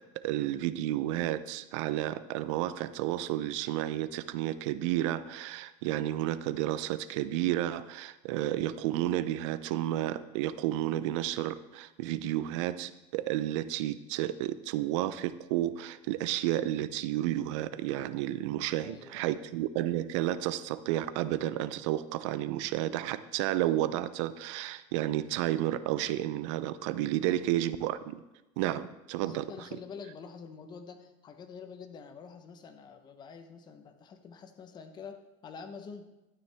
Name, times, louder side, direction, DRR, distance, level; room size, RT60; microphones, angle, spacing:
voice 1, 0.2-28.2 28.6-29.7, right 13 dB, 70° right, 15 dB, 0.5 m, -31 dB
voice 2, 18.7-19.4 27.2-27.4 29.2-36.1, left 5 dB, 25° left, 7 dB, 0.9 m, -47 dB
12.0 x 9.4 x 3.5 m, 0.98 s
supercardioid pair, 150°, 16 cm